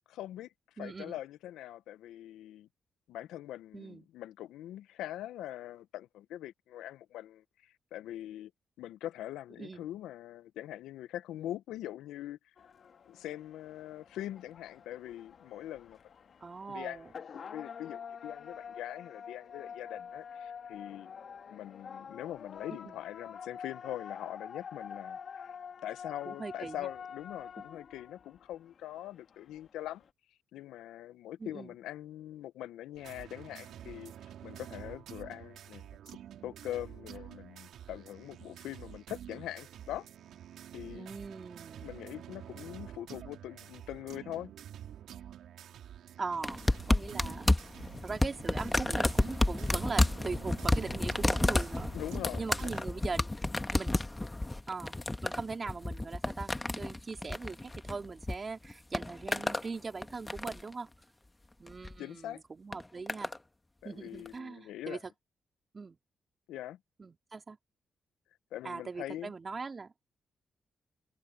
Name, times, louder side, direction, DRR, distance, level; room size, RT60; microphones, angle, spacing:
voice 1, 0.1-2.7 3.1-8.5 8.8-12.4 13.1-16.0 16.7-21.1 21.5-25.5 25.8-30.0 30.5-34.1 34.4-35.9 36.4-40.1 40.7-41.1 41.8-44.5 51.9-52.7 62.0-62.4 63.8-65.0 66.5-66.8 68.5-69.3, left 13 dB, 85° left, 1.0 m, -43 dB
voice 2, 0.8-1.2 3.7-4.1 9.6-9.9 16.4-17.1 22.7-23.0 26.3-26.9 31.4-31.7 41.0-42.0 46.2-47.5 48.0-51.9 52.4-53.4 53.7-54.0 54.7-55.0 55.2-60.9 61.6-63.3 63.8-65.0 65.7-66.0 67.0-67.6 68.6-69.9, right 4 dB, 40° right, 3.5 m, -40 dB
sound 1, 12.6-30.1, left 7 dB, 60° left, 1.9 m, -47 dB
sound 2, 32.9-52.8, right 10 dB, 75° right, 3.6 m, -49 dB
sound 3, 46.4-58.4 58.6-59.7 60.0-60.7 61.7-61.9 62.7-63.4 64.3-64.4, left 2 dB, 20° left, 1.5 m, -31 dB
supercardioid pair, 45°, 0 cm